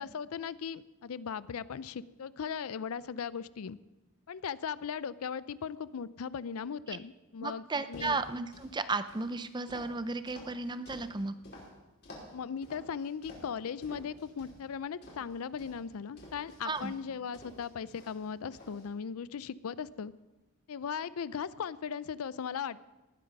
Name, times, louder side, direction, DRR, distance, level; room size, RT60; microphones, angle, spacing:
voice 1, 0.0-3.8 4.3-8.2 12.3-20.1 20.7-22.9, left 7 dB, 75° left, 18 dB, 0.4 m, -38 dB
voice 2, 7.4-11.3 16.6-16.9, right 3 dB, 20° right, 12 dB, 0.5 m, -34 dB
sound 1, 7.8-8.7 9.1-11.7 12.0-12.3 12.6-13.5 13.8-14.6 15.0-17.0 17.3-18.3 18.5-18.8, left 1 dB, 50° left, 5.0 m, -51 dB
19.0 x 9.4 x 5.2 m, 1.1 s
head